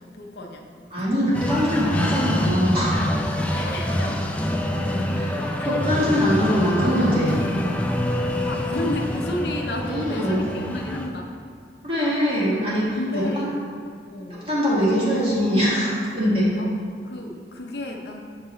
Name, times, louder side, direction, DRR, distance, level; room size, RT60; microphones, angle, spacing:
voice 1, 0.0-1.1 3.5-4.4 5.6-5.7 8.2-11.3 12.4-12.6 12.9-13.5 14.1-14.4 16.6-16.7 17.0-18.2, left 1 dB, 60° left, 2 dB, 0.6 m, -32 dB
voice 2, 0.9-3.0 5.1-7.4 9.8-10.5 11.8-12.9 13.1-13.5 14.3-16.5, equal, 30° right, -8 dB, 1.4 m, -22 dB
sound 1, 1.3-11.1, left 1 dB, 5° left, 0.3 m, -26 dB
6.7 x 3.8 x 4.0 m, 2.1 s
head